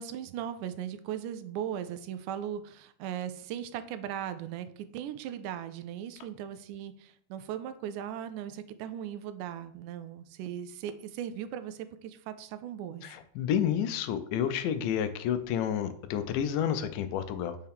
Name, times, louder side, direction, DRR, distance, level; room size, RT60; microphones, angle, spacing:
voice 1, 0.0-13.1, right 10 dB, 85° right, 11 dB, 2.0 m, -38 dB
voice 2, 13.0-17.6, left 9 dB, 90° left, 11 dB, 2.1 m, -30 dB
6.4 x 4.5 x 3.5 m, 0.63 s
omnidirectional pair, 3.6 m